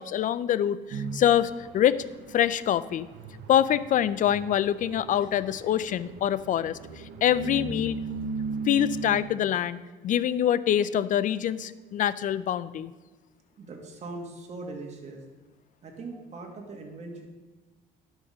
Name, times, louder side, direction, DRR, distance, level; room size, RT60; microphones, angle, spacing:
voice 1, 0.0-2.0 2.3-3.1 3.5-8.0 8.7-12.9, left 10 dB, 50° left, 16 dB, 0.4 m, -25 dB
sound 1, 0.9-9.2, right 4 dB, 70° right, 1.1 m, -38 dB
voice 2, 13.6-15.2 15.8-17.3, right 3 dB, 40° right, 1 dB, 2.0 m, -40 dB
11.0 x 6.3 x 5.2 m, 1.3 s
cardioid pair, 110°, 17 cm